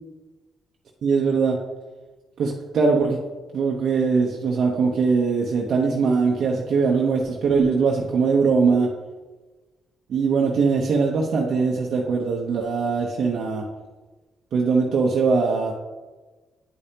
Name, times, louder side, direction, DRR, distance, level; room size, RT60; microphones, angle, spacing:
voice 1, 1.0-1.6 2.4-3.2 3.5-8.9 10.1-13.6 14.5-15.7, right 4 dB, 65° right, -2 dB, 0.9 m, -21 dB
9.6 x 5.1 x 2.9 m, 1.2 s
cardioid pair, 90°, 0 cm